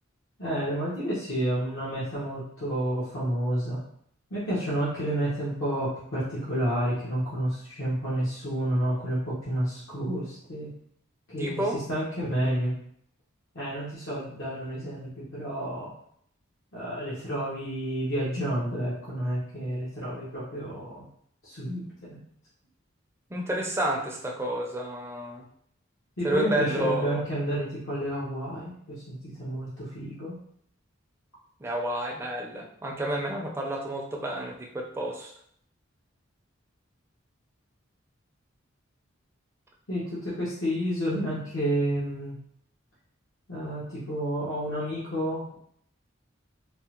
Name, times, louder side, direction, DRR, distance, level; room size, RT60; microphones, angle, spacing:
voice 1, 0.4-3.8 4.3-10.7 11.3-12.7 13.5-15.9 16.7-21.0 21.4-22.2 26.2-30.4 39.9-42.3 43.5-45.5, right 1 dB, 70° left, -8 dB, 0.9 m, -30 dB
voice 2, 11.4-11.8 23.3-25.4 26.2-27.2 31.6-35.3, right 1 dB, 10° right, -1 dB, 0.4 m, -30 dB
3.4 x 2.0 x 2.9 m, 0.67 s
head